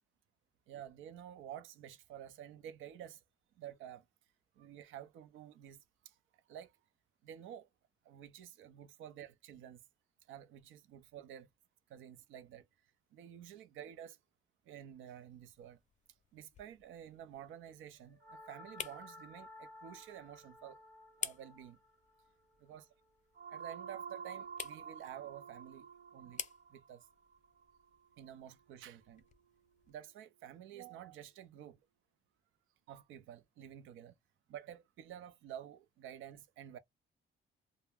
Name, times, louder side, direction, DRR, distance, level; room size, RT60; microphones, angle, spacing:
voice 1, 0.7-3.2 3.6-4.1 4.6-6.8 7.2-7.7 8.0-9.8 10.3-11.5 11.9-12.7 13.1-14.2 14.7-15.8 16.3-20.8 21.2-21.8 22.6-22.9 23.5-26.4 26.7-27.1 28.2-29.2 29.9-31.8 32.9-34.2 34.5-36.8, right 10 dB, 85° right, 0.5 m, -51 dB
sound 1, 15.2-30.0, left 7 dB, 35° left, 0.6 m, -52 dB
sound 2, 18.2-28.4, right 4 dB, 50° right, 0.9 m, -51 dB
2.3 x 2.1 x 3.3 m
cardioid pair, 90°, 20 cm